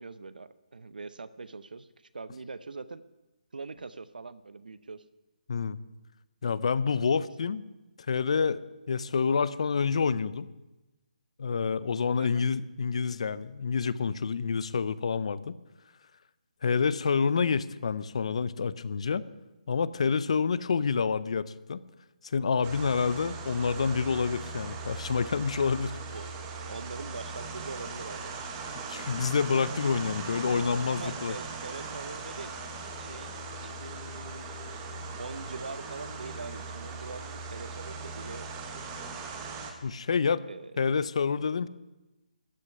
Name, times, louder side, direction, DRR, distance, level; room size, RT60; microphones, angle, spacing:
voice 1, 0.0-3.0 3.5-5.1 12.2-12.4 26.1-28.3 30.9-32.6 33.0-33.3 33.6-34.5 35.2-38.5 40.5-40.9, right 4 dB, 90° right, 15 dB, 0.6 m, -43 dB
voice 2, 6.4-7.6 8.1-8.6 8.9-10.5 11.4-15.5 16.6-19.2 19.7-21.8 22.2-25.9 28.9-31.3 39.8-40.4 40.8-41.7, left 5 dB, 45° left, 17 dB, 0.6 m, -28 dB
sound 1, 22.6-39.7, right 4 dB, 15° right, 1.1 m, -39 dB
13.5 x 6.4 x 9.8 m, 1.0 s
hypercardioid pair, 170°, 5 cm